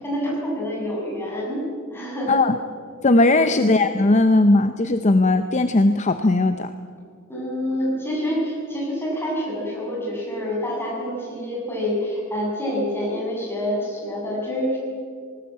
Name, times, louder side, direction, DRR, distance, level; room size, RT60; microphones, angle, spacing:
voice 1, 0.0-1.6 1.9-2.4 3.3-3.6 7.3-14.8, equal, 10° left, -4 dB, 7.5 m, -27 dB
voice 2, 3.0-6.7, left 2 dB, 35° left, 9 dB, 0.7 m, -18 dB
19.5 x 18.5 x 8.7 m, 2.1 s
head